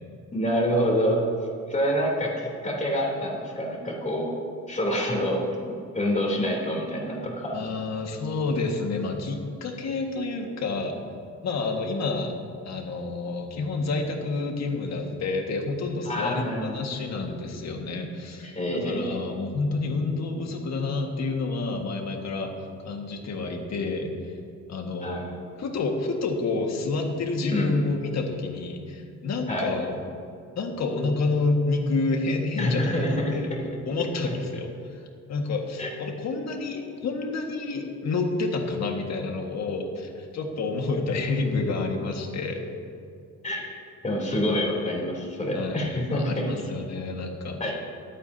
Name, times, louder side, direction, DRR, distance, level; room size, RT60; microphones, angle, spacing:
voice 1, 0.3-1.2 1.7-4.3 4.7-5.4 5.9-7.6 16.0-16.9 18.4-19.2 25.0-25.4 27.5-27.7 29.5-29.7 32.6-33.8 35.8-35.9 43.4-43.8 44.0-46.5 47.6-47.8, equal, 25° left, -2 dB, 3.3 m, -27 dB
voice 2, 7.5-11.0 11.4-12.3 12.7-22.5 22.8-24.4 24.7-25.2 25.6-30.0 30.6-32.9 33.3-33.5 33.9-35.0 35.3-42.6 44.3-44.4 44.7-45.1 45.5-47.6, left 3 dB, 60° left, 2 dB, 1.8 m, -29 dB
22.5 x 8.7 x 2.8 m, 2.4 s
cardioid pair, 90°, 30 cm